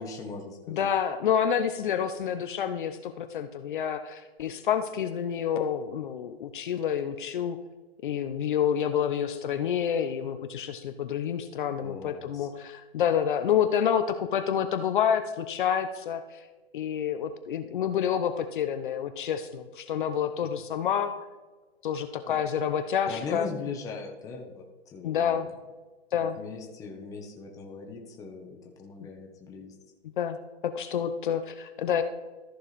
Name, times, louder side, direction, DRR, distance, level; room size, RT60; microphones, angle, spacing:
voice 1, 0.0-0.9 11.8-12.5 22.3-22.4 23.1-25.5 26.1-29.7, left 4 dB, 10° left, 1 dB, 0.9 m, -40 dB
voice 2, 0.7-7.6 8.0-16.4 16.7-21.1 21.8-23.5 25.0-25.5 26.1-26.4 30.0-30.4 30.6-32.0, left 8 dB, 50° left, 8 dB, 0.7 m, -28 dB
14.0 x 4.8 x 4.1 m, 1.2 s
hypercardioid pair, 155°, 32 cm